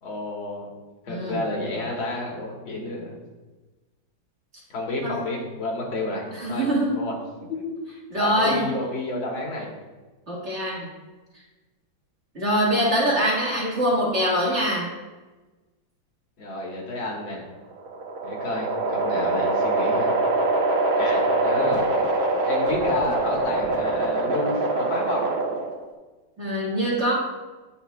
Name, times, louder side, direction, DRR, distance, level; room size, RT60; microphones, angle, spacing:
voice 1, 0.0-0.7 1.1-3.2 4.7-6.7 7.0-7.1 7.5-9.7 16.4-17.4 18.2-20.1 20.9-21.9 22.4-25.3, left 2 dB, 85° left, -2 dB, 2.3 m, -30 dB
voice 2, 1.1-1.4 5.0-5.2 6.3-7.0 8.1-8.7 10.3-10.9 12.3-14.9 26.4-27.1, equal, 35° right, -6 dB, 2.0 m, -23 dB
sound 1, 17.6-25.8, right 2 dB, 75° right, 2.0 m, -24 dB
9.9 x 7.6 x 2.3 m, 1.2 s
omnidirectional pair, 2.2 m